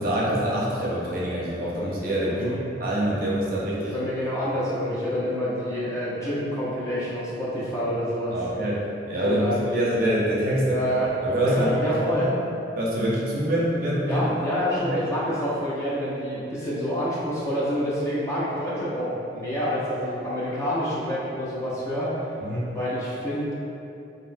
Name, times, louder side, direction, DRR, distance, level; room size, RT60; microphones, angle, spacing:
voice 1, 0.0-2.5 2.8-3.9 8.3-12.3 12.8-15.0 22.4-22.7, right 1 dB, 50° right, -6 dB, 0.6 m, -25 dB
voice 2, 2.3-2.6 3.8-8.4 9.1-9.9 10.7-11.1 11.4-12.3 14.1-22.3 22.7-23.5, equal, 15° left, -9 dB, 0.5 m, -27 dB
3.0 x 2.7 x 2.5 m, 2.8 s
head